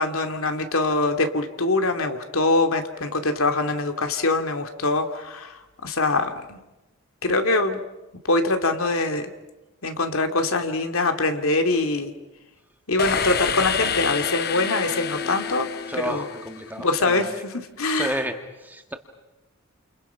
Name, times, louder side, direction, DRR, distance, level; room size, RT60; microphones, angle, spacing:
voice 1, 0.0-6.6 7.2-7.8 8.2-9.3 9.8-12.1 12.9-15.7 15.9-16.3 16.8-18.3, left 2 dB, 80° left, 6 dB, 2.5 m, -23 dB
sound 1, 13.0-16.8, left 6 dB, 45° left, 1.1 m, -28 dB
voice 2, 15.9-17.2 18.0-18.3 18.6-18.9, right 1 dB, 10° right, 5 dB, 1.7 m, -31 dB
30.0 x 28.5 x 5.8 m, 1.0 s
head